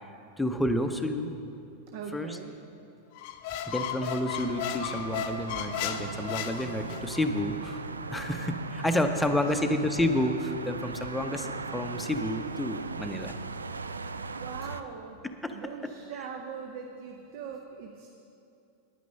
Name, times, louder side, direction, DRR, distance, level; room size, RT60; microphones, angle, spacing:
voice 1, 0.4-1.3 2.1-2.4 3.7-13.4 15.4-15.6, left 1 dB, 5° left, 6 dB, 0.7 m, -30 dB
voice 2, 1.9-2.5 9.7-9.8 14.4-15.2 15.5-18.1, right 6 dB, 50° right, 3 dB, 0.7 m, -41 dB
Squeak, 3.2-7.2, left 8 dB, 45° left, 0.6 m, -35 dB
sound 1, 4.3-14.8, right 4 dB, 75° right, 0.4 m, -38 dB
10.0 x 9.3 x 5.4 m, 2.6 s
figure-of-eight pair, 90°, 0 cm